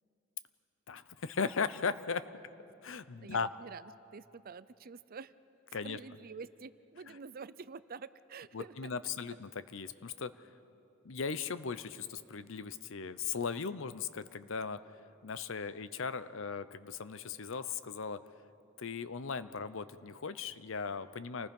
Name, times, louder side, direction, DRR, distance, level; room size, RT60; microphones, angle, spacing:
voice 1, 0.9-2.3 2.8-3.5 5.7-6.0 8.5-10.3 11.0-14.8 15.2-18.2 18.8-21.5, left 5 dB, 65° left, 14 dB, 0.7 m, -37 dB
voice 2, 3.2-5.3 5.8-9.0, right 5 dB, 45° right, 16 dB, 0.5 m, -48 dB
28.0 x 19.5 x 5.4 m, 2.9 s
head